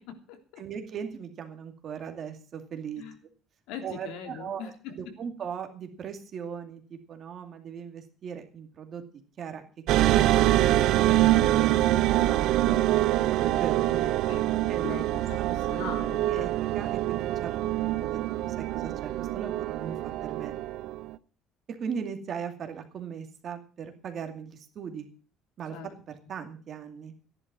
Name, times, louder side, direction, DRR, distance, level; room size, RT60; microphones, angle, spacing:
voice 1, 0.0-0.6 3.0-3.2 3.7-4.9 14.3-16.5 25.7-25.9, left 7 dB, 80° left, 6 dB, 3.4 m, -41 dB
voice 2, 0.6-3.0 3.8-9.0 9.4-9.6 9.9-12.8 13.3-14.8 15.4-15.9 16.3-16.5 16.7-17.6 17.8-20.5 21.7-25.1 25.6-25.8 26.3-27.1, right 7 dB, 35° right, 6 dB, 2.4 m, -38 dB
sound 1, 9.9-21.1, right 14 dB, 55° right, 0.7 m, -25 dB
15.0 x 11.0 x 6.1 m, 0.40 s
cardioid pair, 180°, 0 cm